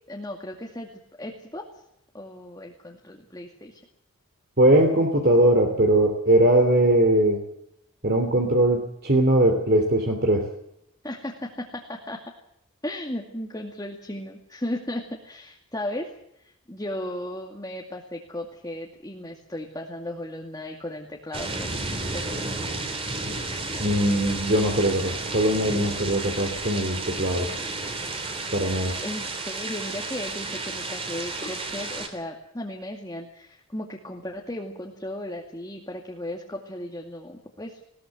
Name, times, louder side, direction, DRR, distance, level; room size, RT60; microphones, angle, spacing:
voice 1, 0.1-0.9 1.2-1.6 2.1-3.8 11.0-12.2 12.8-16.1 16.3-21.8 22.1-22.4 29.0-37.8, left 1 dB, 15° left, 0 dB, 2.3 m, -35 dB
voice 2, 4.6-7.4 8.0-10.5 23.8-27.5 28.5-29.0, right 1 dB, 45° right, 4 dB, 3.2 m, -20 dB
sound 1, 21.3-32.1, right 3 dB, 25° right, 3.4 m, -32 dB
20.5 x 19.0 x 7.8 m, 0.77 s
head